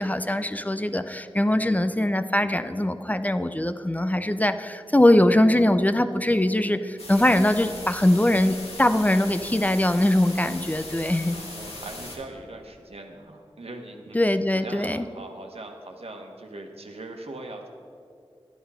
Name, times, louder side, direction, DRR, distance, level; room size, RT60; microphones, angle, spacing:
voice 1, 0.0-11.4 14.1-15.0, left 1 dB, 15° left, 10 dB, 0.5 m, -22 dB
sound 1, 7.0-12.2, left 2 dB, 85° left, 1.9 m, -39 dB
voice 2, 11.2-14.2 14.5-17.7, right 2 dB, 85° right, 3 dB, 1.3 m, -40 dB
11.0 x 9.8 x 5.6 m, 2.4 s
wide cardioid pair, 60°, 10 cm